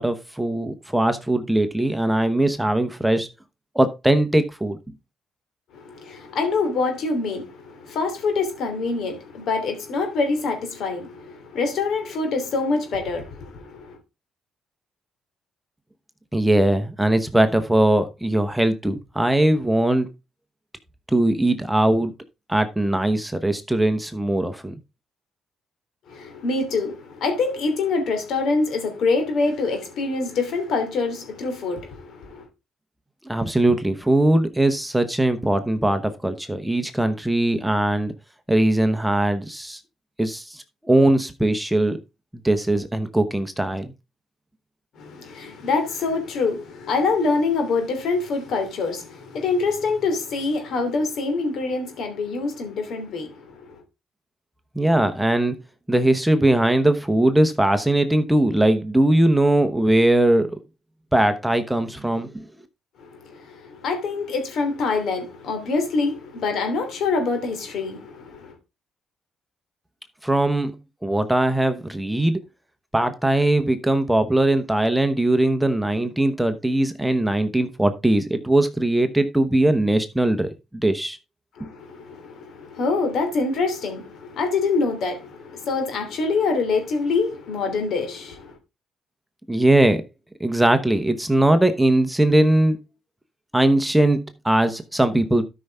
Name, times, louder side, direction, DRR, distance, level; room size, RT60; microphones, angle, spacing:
voice 1, 0.0-3.3 3.7-4.8 16.3-20.1 21.1-22.1 22.5-24.7 33.3-38.1 38.5-39.8 40.2-42.0 42.4-43.9 54.7-55.6 55.9-60.6 61.1-62.4 70.2-70.8 71.0-72.4 72.9-81.2 81.6-81.7 89.5-90.0 90.4-92.8 93.5-95.4, right 1 dB, 5° right, 1.0 m, -20 dB
voice 2, 5.7-14.0 26.1-32.5 45.0-53.8 63.0-68.5 81.6-88.5, left 4 dB, 70° left, 2.9 m, -25 dB
12.5 x 5.6 x 3.5 m
cardioid pair, 90°, 0 cm